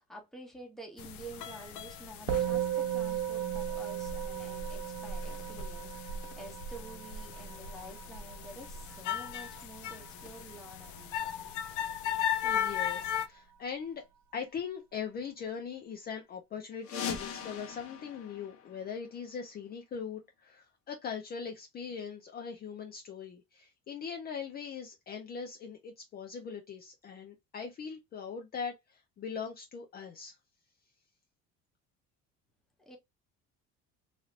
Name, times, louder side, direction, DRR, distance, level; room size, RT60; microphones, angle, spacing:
voice 1, 0.0-11.5 32.8-33.0, right 1 dB, ahead, 0.8 m, -49 dB
sound 1, 1.0-13.3, left 8 dB, 75° left, 0.6 m, -37 dB
Musical instrument, 2.3-11.8, right 11 dB, 70° right, 0.5 m, -37 dB
voice 2, 12.4-14.0 14.3-30.4, left 6 dB, 30° left, 0.5 m, -41 dB
sound 2, 16.8-19.4, left 7 dB, 50° left, 0.9 m, -40 dB
3.2 x 2.6 x 2.4 m
cardioid pair, 150°, 30 cm